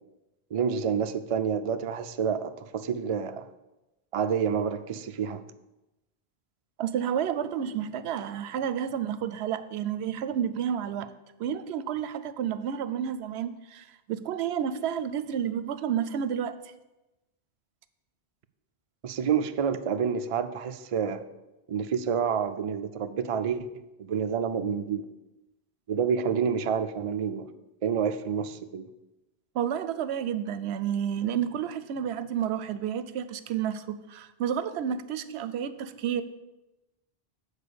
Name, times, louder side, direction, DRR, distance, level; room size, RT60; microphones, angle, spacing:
voice 1, 0.5-3.5 4.1-5.4 19.0-21.2 21.7-23.7 24.0-25.0 25.9-27.5 27.8-28.8, right 7 dB, 50° right, 9 dB, 0.4 m, -28 dB
voice 2, 6.8-11.1 11.4-16.5 29.5-36.2, right 9 dB, 85° right, 13 dB, 0.8 m, -30 dB
8.2 x 4.8 x 6.8 m, 0.99 s
omnidirectional pair, 1.1 m